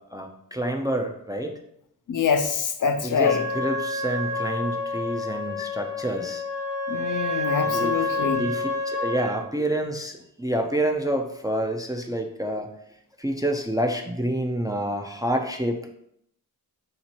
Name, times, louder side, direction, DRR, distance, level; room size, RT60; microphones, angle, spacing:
voice 1, 0.0-1.5 3.0-6.4 7.6-12.7 13.2-15.9, right 1 dB, 10° right, 3 dB, 0.4 m, -28 dB
voice 2, 2.1-3.5 6.9-8.5, left 6 dB, 55° left, 7 dB, 0.5 m, -25 dB
Trumpet, 3.2-9.4, left 2 dB, 75° left, 1.2 m, -28 dB
3.8 x 2.8 x 4.4 m, 0.74 s
wide cardioid pair, 95°, 39 cm